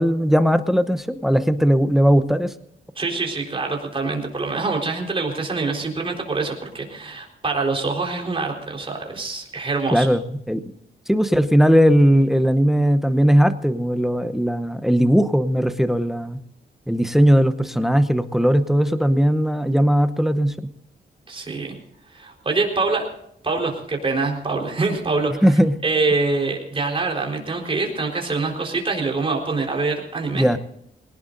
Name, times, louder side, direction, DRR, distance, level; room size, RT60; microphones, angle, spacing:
voice 1, 0.0-2.5 9.9-10.6 11.1-16.4 16.9-20.5 25.4-25.8 30.3-30.6, equal, ahead, 11 dB, 0.8 m, -18 dB
voice 2, 3.0-10.1 21.3-21.7 22.1-23.1 23.4-25.4 25.8-30.6, right 3 dB, 30° right, 1 dB, 4.1 m, -25 dB
22.5 x 18.5 x 2.6 m, 0.74 s
wide cardioid pair, 130°, 18 cm